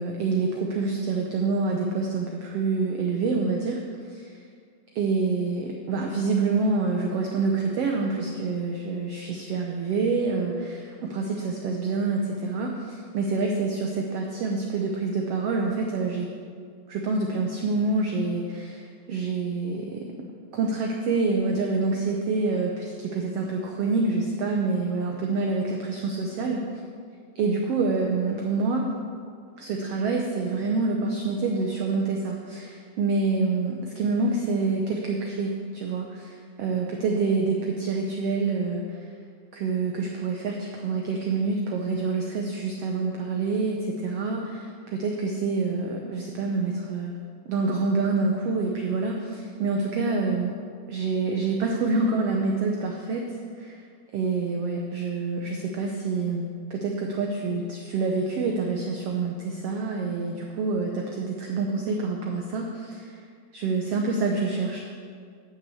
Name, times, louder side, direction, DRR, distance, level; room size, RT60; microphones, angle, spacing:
voice 1, 0.0-3.8 4.1-4.4 5.0-16.3 16.9-20.0 20.5-26.6 27.4-28.8 29.6-39.0 39.5-47.1 47.4-50.5 50.9-53.7 54.1-63.1 63.5-64.8, right 3 dB, 70° right, 1 dB, 1.5 m, -27 dB
11.0 x 6.1 x 7.8 m, 2.1 s
omnidirectional pair, 3.7 m